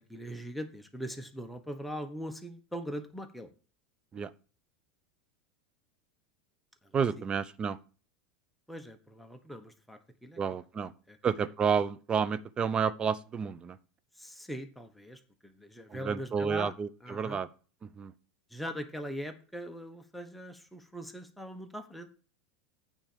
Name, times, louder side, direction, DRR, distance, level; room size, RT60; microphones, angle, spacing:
voice 1, 0.0-3.5 6.8-7.2 8.7-10.4 11.1-11.2 14.1-16.7 17.0-17.4 18.5-22.1, equal, ahead, 5 dB, 1.2 m, -41 dB
voice 2, 6.9-7.8 10.4-10.9 11.2-13.8 15.9-17.5 17.8-18.1, right 6 dB, 25° right, 16 dB, 0.6 m, -30 dB
9.0 x 4.3 x 6.7 m, 0.37 s
supercardioid pair, 120°, 4 cm